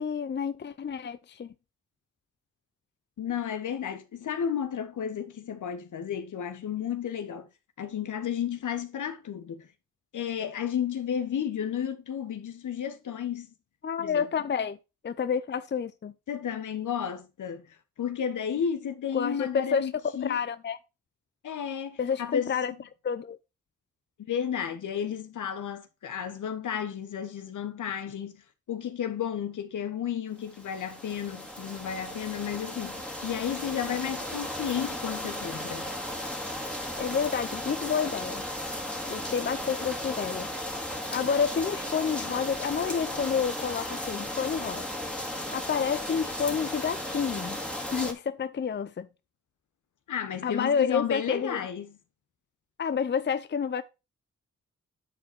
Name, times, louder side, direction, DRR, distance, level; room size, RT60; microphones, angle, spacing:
voice 1, 0.0-1.5 13.8-14.8 15.0-16.1 19.1-20.8 22.0-22.7 23.0-23.4 37.0-38.4 39.1-40.5 41.1-44.8 45.5-47.6 47.9-49.1 50.4-51.6 52.8-53.8, left 6 dB, 35° left, 0.6 m, -29 dB
voice 2, 3.2-7.5 7.8-9.7 10.1-13.5 14.0-14.3 16.3-20.4 21.4-22.6 24.2-28.4 28.7-35.9 50.1-52.0, left 8 dB, 70° left, 1.1 m, -32 dB
sound 1, 30.4-48.1, left 1 dB, 5° left, 2.1 m, -35 dB
9.9 x 4.1 x 4.4 m
supercardioid pair, 45°, 32 cm